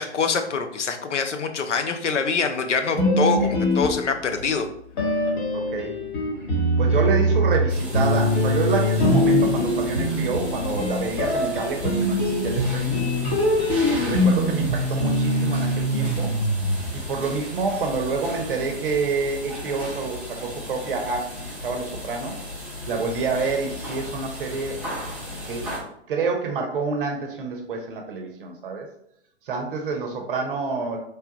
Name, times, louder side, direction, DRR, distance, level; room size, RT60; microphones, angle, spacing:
voice 1, 0.0-4.7, left 5 dB, 85° left, 6 dB, 0.6 m, -25 dB
sound 1, 3.0-4.4 5.0-17.2, equal, 45° left, 1.1 m, -23 dB
voice 2, 5.5-5.9 6.8-13.0 14.0-16.4 16.9-22.3 22.9-24.8 25.5-25.7 26.1-28.9 29.4-31.0, right 4 dB, 50° right, 3 dB, 0.6 m, -28 dB
sound 2, 7.7-25.8, left 1 dB, 5° right, 0.5 m, -35 dB
3.3 x 2.2 x 2.8 m, 0.71 s
hypercardioid pair, 125°, 35 cm